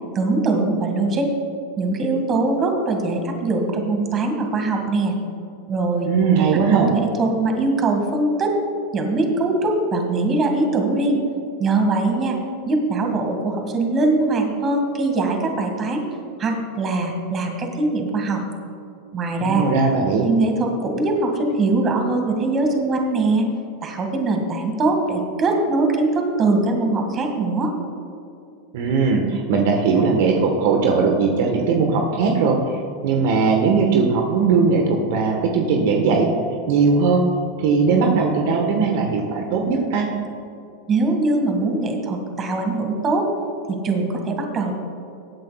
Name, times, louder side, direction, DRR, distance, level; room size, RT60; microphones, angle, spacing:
voice 1, 0.2-1.3 1.8-5.1 5.7-6.1 6.5-8.5 8.9-11.2 11.6-12.4 12.7-16.0 16.4-18.4 19.1-19.7 20.2-23.5 23.8-27.7 40.9-43.3 43.7-44.7, right 2 dB, 30° right, 3 dB, 1.9 m, -22 dB
voice 2, 6.0-6.9 19.4-20.3 28.7-32.8 33.0-36.3 36.7-37.3 37.6-40.1, right 4 dB, 65° right, 2 dB, 1.3 m, -19 dB
20.0 x 8.6 x 2.4 m, 2.6 s
hypercardioid pair, 110°, 0 cm